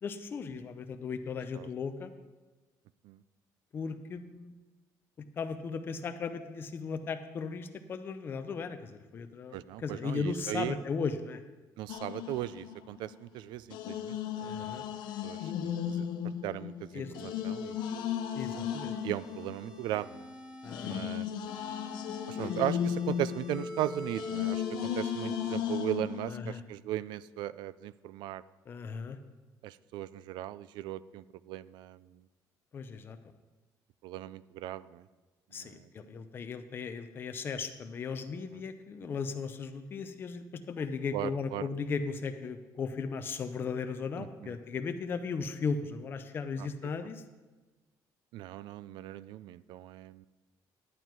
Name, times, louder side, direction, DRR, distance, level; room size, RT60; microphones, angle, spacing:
voice 1, 0.0-2.1 3.7-4.5 5.4-11.4 14.4-14.8 16.9-17.1 18.3-18.9 20.6-21.1 22.4-22.5 26.3-26.6 28.7-29.2 32.7-33.2 35.5-47.2, left 5 dB, 30° left, 8 dB, 0.6 m, -36 dB
voice 2, 9.5-10.8 11.8-14.8 15.2-16.0 16.4-17.8 19.0-20.3 20.8-21.3 22.3-28.4 29.6-32.1 34.0-35.0 35.6-35.9 38.5-38.6 41.1-41.7 44.2-44.6 46.6-46.7 47.0-47.1 48.3-50.3, right 13 dB, 90° right, 18 dB, 0.4 m, -38 dB
sound 1, 11.9-13.1 13.7-20.2 20.7-26.6, left 9 dB, 85° left, 0.8 m, -36 dB
sound 2, 17.0-21.0 21.5-25.5, left 1 dB, 10° right, 0.9 m, -45 dB
11.5 x 9.2 x 4.6 m, 1.2 s
cardioid pair, 180°, 8 cm